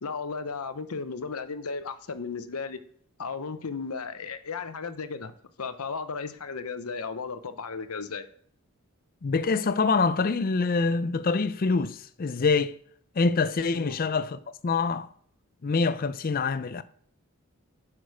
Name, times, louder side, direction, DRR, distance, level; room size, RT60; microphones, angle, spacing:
voice 1, 0.0-2.8 3.2-8.3 13.7-14.0, left 5 dB, 85° left, 0.8 m, -35 dB
voice 2, 9.2-12.7 13.2-15.1 15.6-16.8, left 4 dB, 40° left, 0.5 m, -25 dB
9.6 x 6.0 x 4.7 m
head